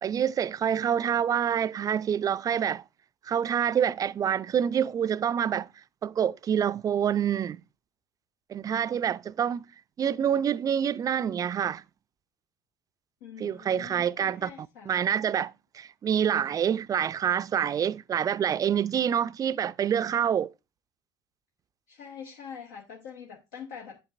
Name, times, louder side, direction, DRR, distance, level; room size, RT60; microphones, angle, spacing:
voice 1, 0.0-2.8 3.2-5.7 6.0-7.6 8.5-9.6 10.0-11.8 13.4-14.5 14.9-20.5, right 8 dB, 35° right, 0.4 m, -27 dB
voice 2, 13.2-14.9 21.9-24.0, left 7 dB, 70° left, 1.0 m, -44 dB
7.9 x 7.1 x 2.5 m
hypercardioid pair, 65°, 11 cm